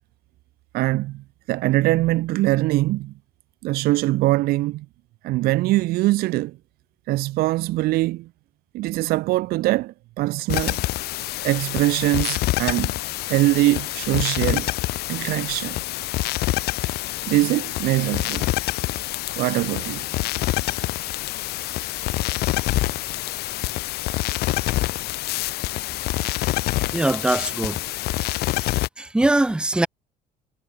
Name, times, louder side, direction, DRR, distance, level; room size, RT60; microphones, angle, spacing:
voice 1, 0.7-3.1 3.6-4.9 5.2-6.6 7.1-8.3 8.7-10.8 11.4-12.9 13.3-14.7 15.1-15.8 17.2-18.5 19.4-20.1, right 18 dB, 65° right, 0.4 m, -22 dB
sound 1, 10.5-28.9, left 17 dB, 75° left, 1.2 m, -26 dB
voice 2, 26.9-27.8 29.0-29.9, right 2 dB, 5° right, 0.7 m, -21 dB
cardioid pair, 120°, 17 cm